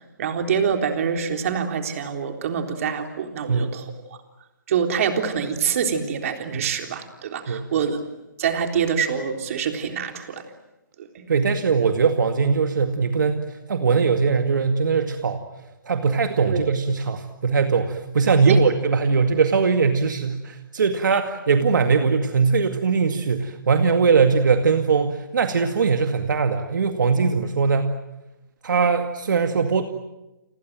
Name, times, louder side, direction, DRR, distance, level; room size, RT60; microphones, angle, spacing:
voice 1, 0.2-3.9 4.7-8.0 8.4-10.4 11.0-11.1 16.4-16.6 18.4-18.6 21.1-21.2, right 7 dB, 45° right, 5 dB, 3.7 m, -25 dB
voice 2, 11.3-13.4 13.7-15.4 15.9-27.9 28.6-29.8, right 5 dB, 70° right, 6 dB, 2.2 m, -20 dB
30.0 x 24.5 x 7.6 m, 0.99 s
hypercardioid pair, 155°, 11 cm